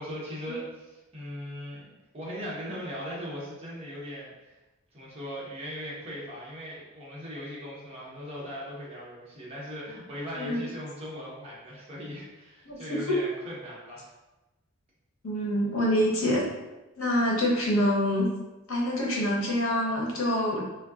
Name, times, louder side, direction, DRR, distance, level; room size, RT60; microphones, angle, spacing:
voice 1, 0.0-1.9 2.1-4.6 4.9-14.1, equal, 30° right, -6 dB, 0.8 m, -39 dB
voice 2, 12.7-13.1 15.2-16.5 17.0-18.3 18.7-20.7, equal, 80° left, -3 dB, 0.8 m, -26 dB
3.5 x 2.2 x 2.4 m, 1.1 s
head